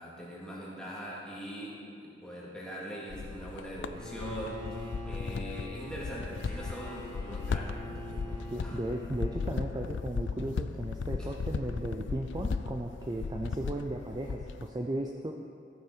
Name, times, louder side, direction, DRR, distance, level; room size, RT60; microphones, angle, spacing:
voice 1, 0.0-8.8 11.2-11.3, equal, 5° left, -7 dB, 2.3 m, -42 dB
sound 1, 3.1-14.7, left 5 dB, 75° left, 0.4 m, -37 dB
Bowed string instrument, 3.9-10.1, left 1 dB, 75° right, 2.4 m, -45 dB
voice 2, 8.5-15.3, right 1 dB, 20° right, 1 dB, 0.5 m, -35 dB
14.5 x 9.3 x 4.5 m, 2.5 s
head